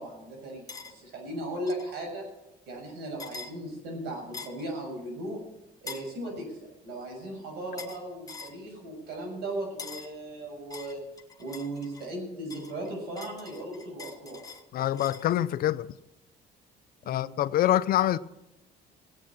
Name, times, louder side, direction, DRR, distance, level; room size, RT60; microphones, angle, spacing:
voice 1, 0.0-2.2 2.7-5.4 5.8-11.0 11.4-14.4 17.0-17.3, right 1 dB, 80° right, 6.9 m, -37 dB
sound 1, 0.7-0.9 1.7-1.9 3.2-3.5 4.3-4.7 5.9-6.1 7.8-8.0 8.3-8.6 9.8-10.1 10.7-12.1 12.5-15.3, left 4 dB, 20° left, 1.3 m, -43 dB
voice 2, 14.7-16.0 17.1-18.2, left 12 dB, 60° left, 0.6 m, -25 dB
17.0 x 8.7 x 7.2 m
cardioid pair, 110°, 17 cm